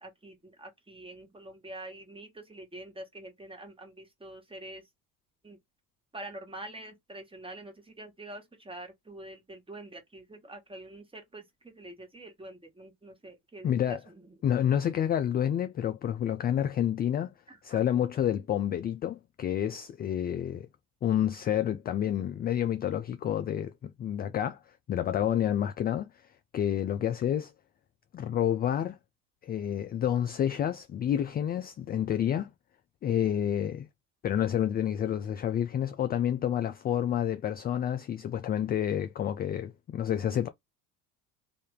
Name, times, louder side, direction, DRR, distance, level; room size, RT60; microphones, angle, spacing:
voice 1, 0.0-4.8 5.4-5.6 6.1-14.0 17.5-17.9, right 1 dB, 10° right, 1.6 m, -46 dB
voice 2, 13.6-14.0 14.4-17.3 17.6-20.7 21.0-24.6 24.9-26.1 26.5-27.5 28.1-29.0 29.4-32.5 33.0-33.9 34.2-40.5, left 10 dB, 25° left, 0.3 m, -29 dB
3.5 x 2.6 x 3.5 m
hypercardioid pair, 65°, 48 cm